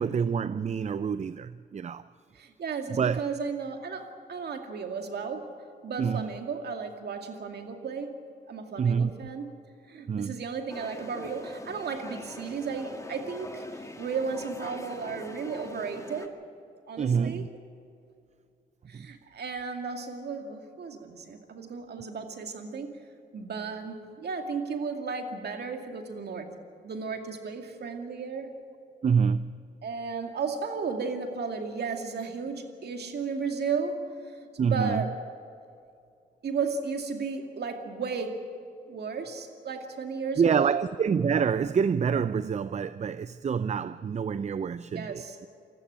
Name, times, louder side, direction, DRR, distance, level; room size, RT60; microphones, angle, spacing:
voice 1, 0.0-2.0 2.9-3.2 6.0-6.3 8.8-9.1 10.1-10.4 17.0-17.5 18.9-19.1 29.0-29.5 34.6-35.0 40.4-45.5, right 6 dB, 40° right, 0.5 m, -27 dB
voice 2, 2.3-5.5 5.8-8.2 8.5-9.5 9.9-16.4 16.9-17.5 18.9-23.0 23.3-26.5 26.8-28.5 29.8-34.1 34.5-35.2 36.4-38.5 38.9-40.8 44.9-45.4, right 5 dB, 65° right, 2.3 m, -34 dB
sound 1, 10.7-16.3, left 2 dB, 15° left, 2.2 m, -43 dB
21.0 x 14.5 x 10.0 m
supercardioid pair, 55°, 18 cm